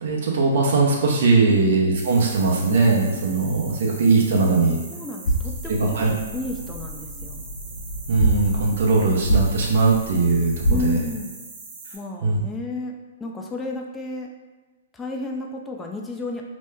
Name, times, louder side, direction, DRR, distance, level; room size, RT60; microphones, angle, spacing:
voice 1, 0.0-4.8 5.8-6.1 8.1-10.5 10.8-11.0 12.2-12.4, right 3 dB, 65° right, -1 dB, 0.7 m, -19 dB
sound 1, 2.0-12.0, right 3 dB, 30° right, 0.7 m, -41 dB
voice 2, 4.9-6.0 6.3-7.5 10.7-11.3 11.9-12.9 13.2-14.3 14.9-16.4, left 2 dB, 15° left, 1 dB, 0.4 m, -32 dB
sound 2, 5.2-10.9, right 1 dB, 60° left, 0.7 m, -27 dB
2.9 x 2.1 x 3.4 m, 1.3 s
hypercardioid pair, 130°, 0 cm